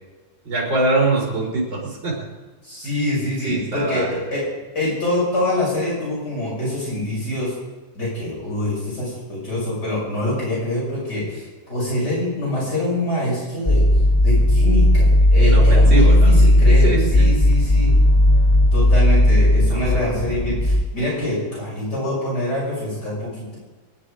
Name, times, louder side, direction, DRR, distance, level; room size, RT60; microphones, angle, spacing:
voice 1, 0.4-2.2 3.4-4.1 15.4-16.5 16.8-17.3 19.7-20.3, right 3 dB, 65° right, -4 dB, 5.3 m, -23 dB
voice 2, 2.6-4.4 4.7-7.5 7.9-13.8 14.2-17.9 18.7-23.6, left 1 dB, 55° left, -6 dB, 6.7 m, -25 dB
sound 1, 13.7-20.8, left 1 dB, 30° left, 0.7 m, -15 dB
23.5 x 10.5 x 5.0 m, 1.2 s
omnidirectional pair, 2.2 m